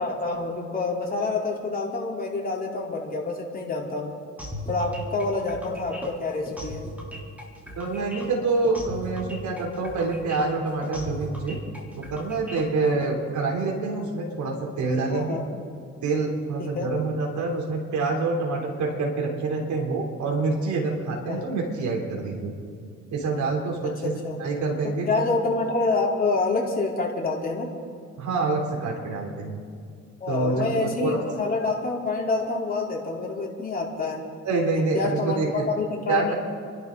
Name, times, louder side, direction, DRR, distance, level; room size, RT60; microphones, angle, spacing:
voice 1, 0.0-4.1 4.7-6.9 15.1-15.4 16.6-16.9 21.3-21.5 24.0-24.4 24.8-27.7 30.2-34.2 34.7-36.3, left 3 dB, 30° left, -3 dB, 4.0 m, -27 dB
sound 1, 4.4-13.1, equal, 5° right, 3.9 m, -37 dB
voice 2, 7.7-11.6 12.0-15.4 16.0-22.5 23.1-24.1 24.4-25.2 28.2-29.6 30.3-31.2 34.4-35.6 36.1-36.3, right 3 dB, 70° right, 0 dB, 3.5 m, -26 dB
29.5 x 11.5 x 4.0 m, 2.3 s
cardioid pair, 90°, 30 cm